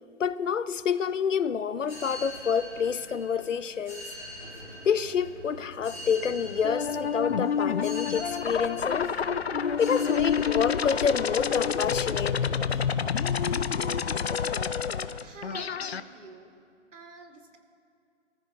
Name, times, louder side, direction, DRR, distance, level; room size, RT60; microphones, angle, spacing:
voice 1, 0.2-4.1 4.8-9.2 9.8-12.4, left 7 dB, 85° left, 0.8 m, -28 dB
sound 1, 1.8-15.3, left 1 dB, 5° right, 4.0 m, -44 dB
sound 2, 6.6-16.0, left 7 dB, 60° left, 0.6 m, -28 dB
voice 2, 15.2-16.6 16.9-17.6, right 3 dB, 75° right, 2.4 m, -47 dB
28.5 x 14.5 x 2.8 m
hypercardioid pair, 180°, 37 cm